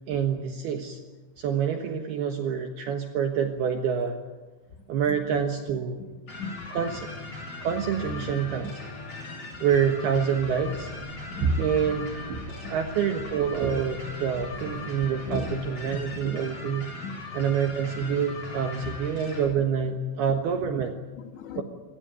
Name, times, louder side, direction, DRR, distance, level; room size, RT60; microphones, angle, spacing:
voice 1, 0.1-1.0 1.4-4.2 4.9-6.0 6.7-7.1 7.6-8.7 9.6-10.9 11.6-12.1 12.7-16.9 17.3-21.0 21.6-21.7, right 7 dB, 65° right, 4 dB, 3.0 m, -27 dB
voice 2, 4.7-5.2 6.0-6.6 7.5-8.2 11.3-11.6 12.6-12.7 14.4-14.9 15.3-15.4 17.0-17.2 18.9-19.0 19.3-19.4 20.6-20.7 21.1-21.6, left 5 dB, 75° left, 6 dB, 4.2 m, -40 dB
sound 1, 6.3-19.5, left 3 dB, 30° left, 8.6 m, -39 dB
sound 2, 10.4-16.3, right 3 dB, 90° right, 6.4 m, -35 dB
25.5 x 18.5 x 9.0 m, 1.3 s
omnidirectional pair, 5.4 m